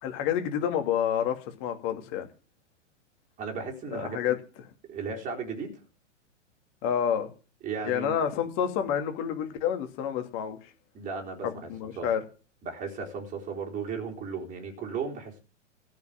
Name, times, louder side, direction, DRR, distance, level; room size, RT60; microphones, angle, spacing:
voice 1, 0.0-2.3 3.9-4.3 6.8-7.3 7.8-10.6 11.4-12.2, left 9 dB, 35° left, 7 dB, 2.5 m, -29 dB
voice 2, 3.4-4.2 4.9-5.7 7.6-8.2 10.9-11.7 12.0-12.1 12.6-15.4, right 5 dB, 20° right, 1 dB, 3.9 m, -35 dB
14.5 x 5.9 x 8.7 m, 0.36 s
figure-of-eight pair, 110°, 38 cm